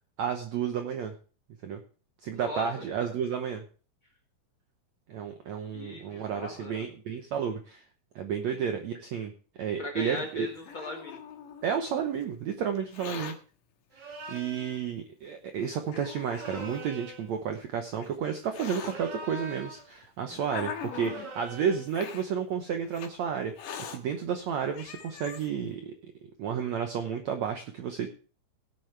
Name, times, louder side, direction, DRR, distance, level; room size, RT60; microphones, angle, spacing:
voice 1, 0.2-1.1 1.6-1.8 2.2-3.6 5.1-7.8 8.2-9.3 9.6-10.5 11.6-13.4 14.3-23.5 23.9-26.1 26.4-28.1, right 7 dB, 75° right, 6 dB, 1.7 m, -32 dB
voice 2, 2.3-2.7 3.0-3.1 5.7-6.9 8.5-8.6 9.8-11.2 13.1-13.2, left 2 dB, 45° left, 1 dB, 1.7 m, -39 dB
Hiss, 10.2-11.8 12.8-13.4 14.3-14.4 15.2-15.3 15.9-16.9 17.7-18.9 19.8-21.3 21.9-22.3 22.9-23.1 23.6-24.0 24.5-24.6 24.7-25.5, left 7 dB, 65° left, 2.7 m, -41 dB
sound 1, 13.9-14.9 16.3-17.3 18.7-19.9 20.9-21.9, right 2 dB, 50° right, 1.3 m, -43 dB
17.5 x 8.4 x 3.3 m, 0.38 s
omnidirectional pair, 4.4 m